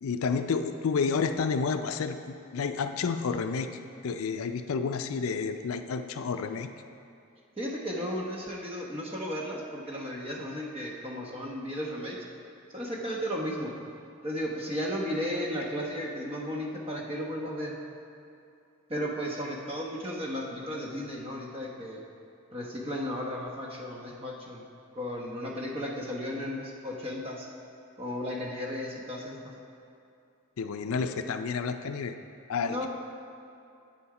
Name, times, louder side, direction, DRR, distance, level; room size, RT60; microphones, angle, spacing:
voice 1, 0.0-3.7 4.0-6.7 30.6-32.1 32.5-32.9, left 5 dB, 80° left, 8 dB, 0.4 m, -30 dB
voice 2, 7.6-12.2 12.7-13.8 14.2-17.7 18.9-22.0 22.5-24.6 24.9-27.5 28.0-29.5 32.7-32.9, equal, 25° right, -2 dB, 1.0 m, -34 dB
8.5 x 7.0 x 4.8 m, 2.6 s
head